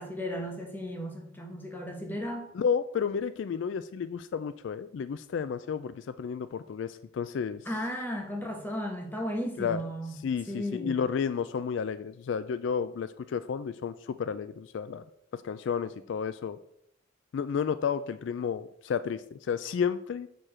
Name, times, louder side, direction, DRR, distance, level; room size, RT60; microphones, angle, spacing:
voice 1, 0.0-2.5 7.6-10.2 10.5-11.0, equal, 10° left, 1.1 m, -35 dB
voice 2, 2.5-7.6 9.6-9.8 10.2-15.0 15.3-16.6 17.3-20.3, left 6 dB, 65° left, 0.3 m, -31 dB
6.8 x 6.3 x 4.3 m
head